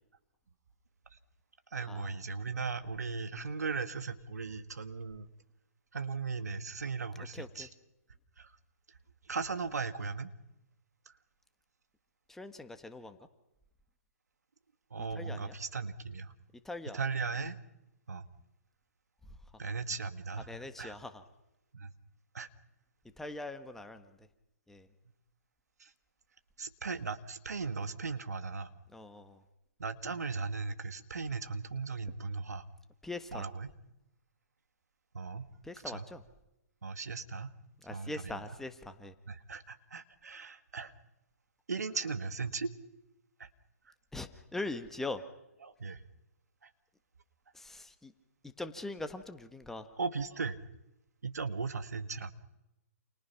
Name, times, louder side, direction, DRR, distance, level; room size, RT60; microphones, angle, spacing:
voice 1, 1.7-5.3 5.9-7.7 8.4-8.5 9.3-10.3 14.9-16.3 16.9-17.6 18.1-18.2 19.6-20.9 21.7-21.9 22.3-22.5 25.8-25.9 26.6-28.7 29.8-32.7 33.3-33.7 35.1-35.5 35.9-36.1 36.8-37.5 37.9-38.4 39.3-40.9 41.7-42.7 43.4-43.5 45.6-46.0 46.6-46.7 50.0-50.6 51.2-52.3, right 4 dB, 80° right, 10 dB, 1.8 m, -37 dB
voice 2, 7.3-7.7 12.3-13.2 15.1-15.5 16.6-17.0 20.5-21.2 23.2-24.3 24.7-24.9 28.9-29.4 33.0-33.4 35.6-36.2 37.8-39.1 44.1-45.2 47.5-48.1 48.6-49.9, left 2 dB, 5° left, 8 dB, 1.4 m, -42 dB
29.5 x 28.5 x 5.8 m, 0.90 s
hypercardioid pair, 140°, 9 cm